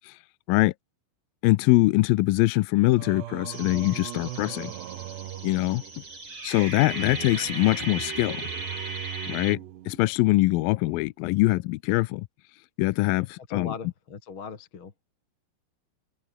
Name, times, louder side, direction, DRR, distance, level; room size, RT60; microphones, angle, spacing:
voice 1, 1.4-4.7 5.4-5.8 6.4-8.4 9.3-9.6 9.9-12.3 12.8-13.7, left 20 dB, 85° left, 2.1 m, -23 dB
Singing, 3.0-10.3, right 13 dB, 90° right, 3.7 m, -40 dB
sound 1, 3.5-9.5, right 2 dB, 30° right, 8.8 m, -37 dB
voice 2, 13.5-14.9, left 6 dB, 35° left, 2.5 m, -38 dB
omnidirectional pair, 4.8 m